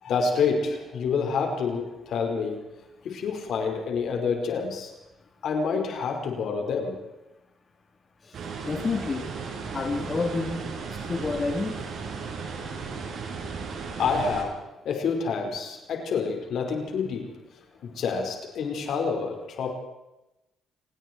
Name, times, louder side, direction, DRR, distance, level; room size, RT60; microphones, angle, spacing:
voice 1, 0.0-2.7 3.0-4.9 5.4-7.0 14.0-17.4 17.8-19.7, left 5 dB, 70° left, 3 dB, 5.2 m, -28 dB
sound 1, 8.3-14.4, right 5 dB, 65° right, 6.6 m, -35 dB
voice 2, 8.7-9.3 9.7-10.6 11.1-11.8, left 3 dB, 35° left, 2 dB, 3.7 m, -28 dB
29.5 x 20.0 x 4.7 m, 0.96 s
cardioid pair, 90°, 0 cm